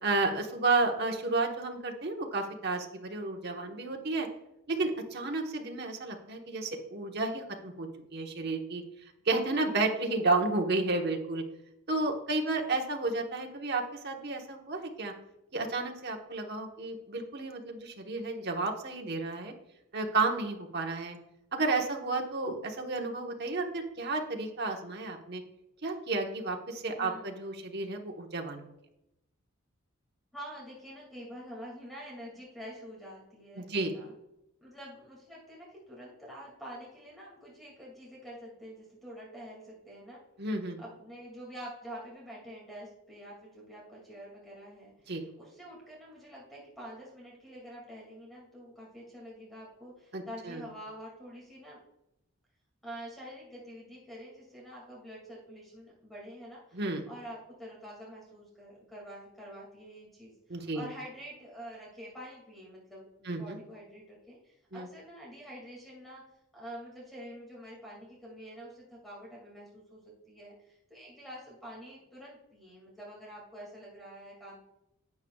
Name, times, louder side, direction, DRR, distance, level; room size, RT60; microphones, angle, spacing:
voice 1, 0.0-4.3 4.7-8.8 9.2-11.4 11.9-15.1 15.5-19.5 19.9-21.2 21.5-25.4 25.8-28.6 33.6-33.9 40.4-40.8 45.1-45.2 50.1-50.6 56.7-57.0 60.5-60.9 63.2-63.6 64.7-64.9, right 3 dB, 50° right, 2 dB, 1.2 m, -32 dB
voice 2, 27.0-27.5 30.3-34.1 34.6-40.2 40.8-51.8 52.8-56.8 57.1-66.2 66.5-74.6, equal, ahead, -4 dB, 2.3 m, -47 dB
11.5 x 8.6 x 2.4 m, 0.86 s
head